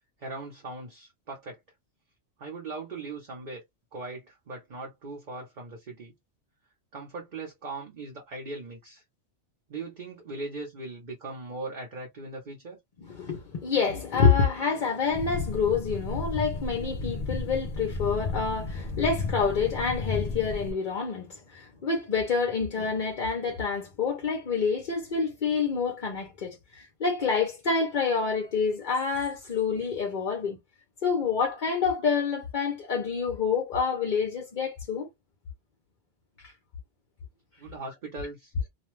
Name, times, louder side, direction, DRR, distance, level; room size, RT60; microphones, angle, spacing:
voice 1, 0.2-1.6 2.4-3.6 3.9-6.1 6.9-9.0 9.7-12.8 37.6-38.5, right 3 dB, 45° right, 0.9 m, -39 dB
voice 2, 13.1-30.6 31.0-35.1 36.4-36.5, left 5 dB, 50° left, 0.7 m, -27 dB
sound 1, 15.1-20.7, left 4 dB, 75° left, 0.3 m, -33 dB
2.5 x 2.3 x 3.1 m
omnidirectional pair, 1.2 m